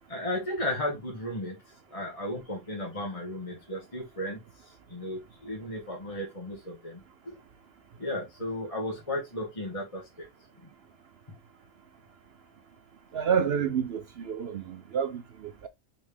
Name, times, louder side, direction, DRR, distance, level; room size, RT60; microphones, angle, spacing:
voice 1, 0.1-1.6 1.9-4.4 4.9-7.4 8.0-10.3, left 1 dB, 25° left, 1.9 m, -34 dB
voice 2, 13.1-15.7, right 7 dB, 60° right, 0.7 m, -29 dB
6.2 x 4.3 x 3.5 m
omnidirectional pair, 1.5 m